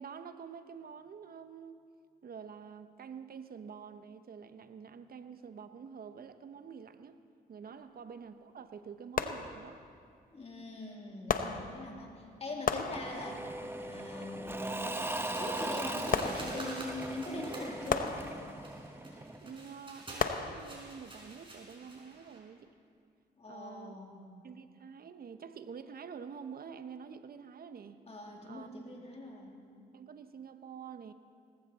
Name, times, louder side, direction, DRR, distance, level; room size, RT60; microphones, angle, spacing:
voice 1, 0.0-1.8 2.2-7.2 7.5-9.8 19.4-22.7 23.5-24.0 24.4-28.0 28.4-28.7 29.9-31.1, right 6 dB, 55° right, 10 dB, 0.9 m, -47 dB
sound 1, 7.6-7.8 9.2-10.0 11.3-12.2 12.7-13.6 16.1-17.0 17.9-18.9 20.2-21.1 21.7-21.8, left 6 dB, 50° left, 0.9 m, -35 dB
voice 2, 10.3-13.5 13.7-14.8 15.4-18.2 23.4-24.3 28.1-29.5, left 2 dB, 35° left, 0 dB, 3.0 m, -42 dB
Engine / Mechanisms / Drill, 12.9-19.6, right 1 dB, 15° right, 1.1 m, -39 dB
sound 2, 15.0-22.4, right 1 dB, 30° right, 4.9 m, -48 dB
19.0 x 15.0 x 4.2 m, 2.3 s
supercardioid pair, 60°, 18 cm